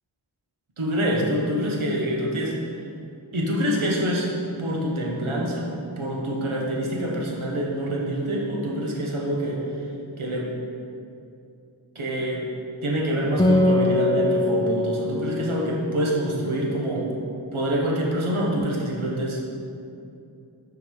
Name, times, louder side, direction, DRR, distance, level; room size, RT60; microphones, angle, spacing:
voice 1, 0.8-2.5 3.3-4.3 4.6-5.7 6.0-9.6 10.2-10.5 11.9-12.4 12.8-17.1 17.5-19.5, equal, 90° right, -3 dB, 1.1 m, -26 dB
Acoustic guitar, 13.4-17.1, left 2 dB, 10° left, 0.4 m, -23 dB
5.7 x 4.0 x 5.2 m, 2.7 s
wide cardioid pair, 55°, 47 cm